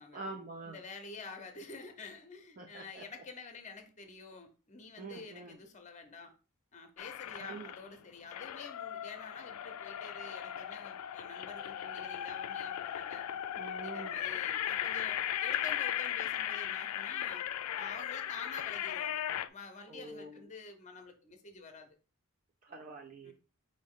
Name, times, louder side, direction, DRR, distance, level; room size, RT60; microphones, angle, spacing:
voice 1, 0.1-0.8 2.6-3.0 5.0-5.6 7.4-7.7 13.6-14.2 19.9-20.5 22.6-23.3, right 3 dB, 35° right, 0.5 m, -45 dB
voice 2, 0.6-6.3 6.7-13.3 13.7-17.5 17.8-22.0 23.2-23.3, left 4 dB, 30° left, 0.7 m, -49 dB
sound 1, 7.0-7.9 8.3-19.5, left 11 dB, 75° left, 0.3 m, -37 dB
5.0 x 2.6 x 3.6 m
head